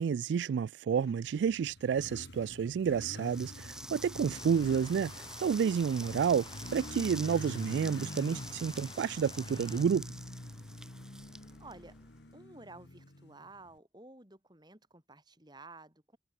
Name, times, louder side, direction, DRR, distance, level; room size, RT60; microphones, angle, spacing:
voice 1, 0.0-10.1, right 7 dB, 85° right, 0.3 m, -30 dB
Motorcycle, 1.1-13.7, left 1 dB, 75° left, 1.9 m, -46 dB
sound 1, 3.2-12.2, right 1 dB, 5° right, 2.9 m, -48 dB
sound 2, 4.3-9.9, left 4 dB, 30° left, 5.5 m, -52 dB
voice 2, 11.6-12.0 12.3-16.2, right 2 dB, 25° right, 5.6 m, -52 dB
head